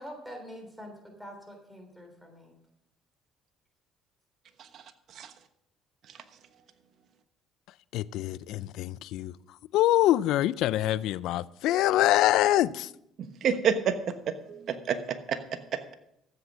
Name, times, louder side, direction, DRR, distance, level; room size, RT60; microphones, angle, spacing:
voice 1, 0.0-2.6, equal, 5° right, 3.5 m, -45 dB
voice 2, 7.9-9.3 9.7-12.9, left 14 dB, 75° left, 0.4 m, -25 dB
voice 3, 13.2-14.0 14.3-15.9, right 7 dB, 60° right, 1.1 m, -30 dB
14.5 x 7.9 x 6.2 m
supercardioid pair, 85°, 0 cm